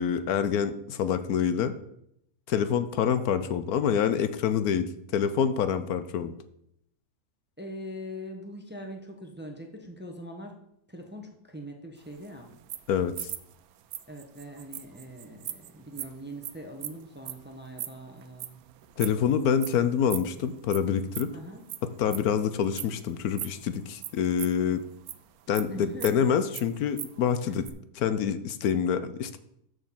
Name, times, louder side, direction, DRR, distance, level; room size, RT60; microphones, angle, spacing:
voice 1, 0.0-1.7 2.5-6.3 12.9-13.3 19.0-21.3 21.8-24.8 25.5-27.6 28.0-29.4, left 8 dB, 75° left, 12 dB, 1.1 m, -26 dB
voice 2, 7.6-10.6 10.9-12.5 14.1-18.6 21.3-21.6 25.7-26.3 27.5-27.6, equal, 10° right, 3 dB, 0.9 m, -42 dB
sound 1, 12.0-19.3 19.6-19.8 20.1-20.8 21.1-23.6 23.9-25.2 25.5-27.2 27.4-27.7, right 12 dB, 75° right, 1.1 m, -38 dB
6.4 x 6.4 x 7.4 m, 0.75 s
omnidirectional pair, 1.6 m